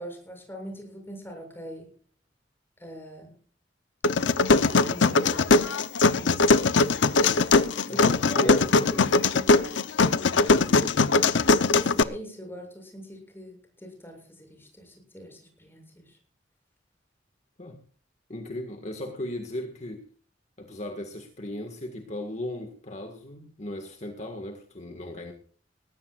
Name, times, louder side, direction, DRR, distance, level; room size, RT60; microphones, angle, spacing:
voice 1, 0.0-1.9 2.8-3.4 4.5-5.8 6.2-6.7 7.5-7.6 7.9-8.0 8.3-8.6 8.9-9.6 11.7-16.2, equal, 15° left, 2 dB, 7.4 m, -42 dB
sound 1, 4.0-12.0, left 3 dB, 85° left, 0.8 m, -21 dB
voice 2, 7.9-9.0 10.5-11.1 17.6-17.8 18.3-20.1 20.6-25.3, left 1 dB, 40° left, 5 dB, 1.8 m, -37 dB
20.0 x 17.5 x 2.5 m, 0.43 s
head